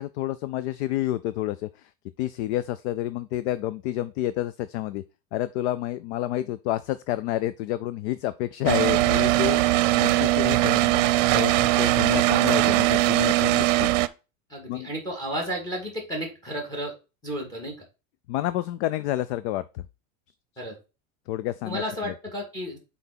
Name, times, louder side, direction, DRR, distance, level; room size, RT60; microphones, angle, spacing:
voice 1, 0.0-1.9 2.2-5.0 5.3-9.6 10.0-13.9 14.7-14.9 18.3-19.8 21.3-22.1, left 14 dB, 55° left, 0.5 m, -29 dB
sound 1, 8.7-14.1, right 18 dB, 60° right, 0.7 m, -21 dB
voice 2, 14.5-16.9 17.2-17.8 20.6-20.8 21.6-22.8, equal, 10° left, 2.2 m, -33 dB
5.9 x 4.1 x 5.7 m
supercardioid pair, 165°, 40 cm